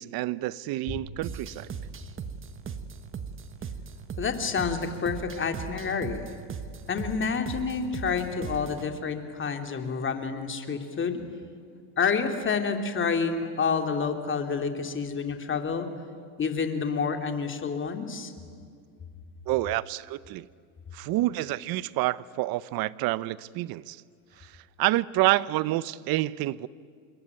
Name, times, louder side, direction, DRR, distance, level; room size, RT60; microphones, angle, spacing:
voice 1, 0.0-1.7 19.5-20.5 20.9-24.0 24.4-24.5 24.8-26.7, right 17 dB, 55° right, 19 dB, 0.8 m, -28 dB
sound 1, 1.2-8.9, right 6 dB, 30° right, 1.6 m, -39 dB
voice 2, 4.2-6.3 6.9-11.2 12.0-15.9 16.4-18.3, left 5 dB, 25° left, 6 dB, 2.8 m, -29 dB
27.5 x 22.0 x 9.7 m, 2.2 s
supercardioid pair, 110°, 43 cm